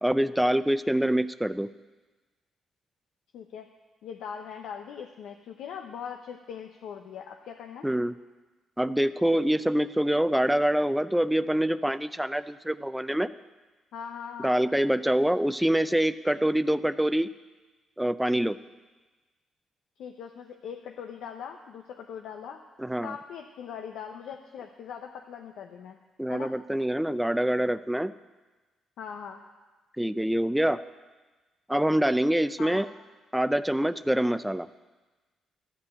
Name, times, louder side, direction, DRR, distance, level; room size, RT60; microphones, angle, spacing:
voice 1, 0.0-1.7 7.8-8.1 8.8-13.3 14.4-17.3 18.0-18.6 22.8-23.1 26.2-28.1 30.0-30.8 31.7-32.9 33.3-34.7, right 1 dB, 5° right, 14 dB, 0.4 m, -25 dB
voice 2, 3.3-3.7 4.0-7.9 13.9-14.6 20.0-22.6 23.0-26.0 26.3-26.5 29.0-29.4 32.6-32.9, left 7 dB, 80° left, 3 dB, 0.7 m, -40 dB
13.0 x 5.5 x 8.3 m, 1.2 s
cardioid pair, 90°, 0 cm